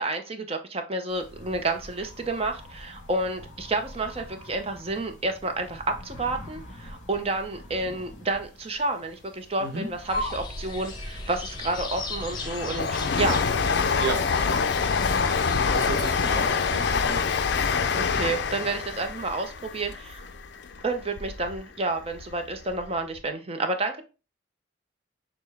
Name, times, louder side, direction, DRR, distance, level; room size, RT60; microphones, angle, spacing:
voice 1, 0.0-13.4 17.9-20.3 20.8-24.0, right 2 dB, 30° right, 0.6 m, -30 dB
sound 1, 1.1-20.7, left 1 dB, 40° left, 1.3 m, -47 dB
sound 2, 10.1-17.6, left 2 dB, 20° left, 0.7 m, -36 dB
Train, 11.4-21.6 22.0-22.9 23.1-23.2, left 5 dB, 60° left, 0.4 m, -26 dB
voice 2, 15.7-17.2, right 3 dB, 55° right, 1.0 m, -33 dB
6.4 x 2.2 x 3.4 m
head